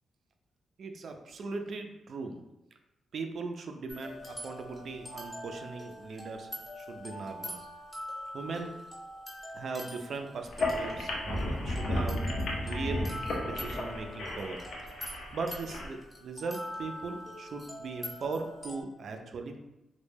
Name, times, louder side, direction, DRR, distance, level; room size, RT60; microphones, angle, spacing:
voice 1, 0.8-2.4 3.1-6.5 6.8-7.6 8.3-8.8 9.5-12.3 12.5-13.1 13.4-14.9 15.3-19.6, right 4 dB, 65° right, 5 dB, 0.3 m, -39 dB
sound 1, 3.9-18.8, equal, 15° left, 0.7 m, -44 dB
sound 2, 10.4-15.9, left 1 dB, 75° left, 0.5 m, -33 dB
2.1 x 2.1 x 3.2 m, 0.98 s
cardioid pair, 75°, 0 cm